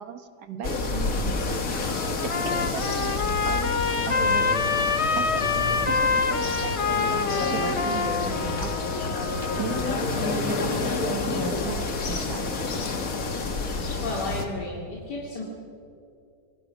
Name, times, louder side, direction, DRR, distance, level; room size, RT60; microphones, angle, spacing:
voice 1, 0.0-1.4 2.2-4.5 5.1-5.5 5.9-9.1 9.6-12.5, right 8 dB, 80° right, 9 dB, 1.8 m, -37 dB
sound 1, 0.6-14.5, left 3 dB, 55° left, 2.0 m, -29 dB
Trumpet, 1.6-10.0, left 4 dB, 40° left, 0.5 m, -27 dB
voice 2, 14.0-15.4, left 2 dB, 90° left, -3 dB, 3.0 m, -33 dB
27.0 x 20.0 x 6.3 m, 2.5 s
omnidirectional pair, 1.7 m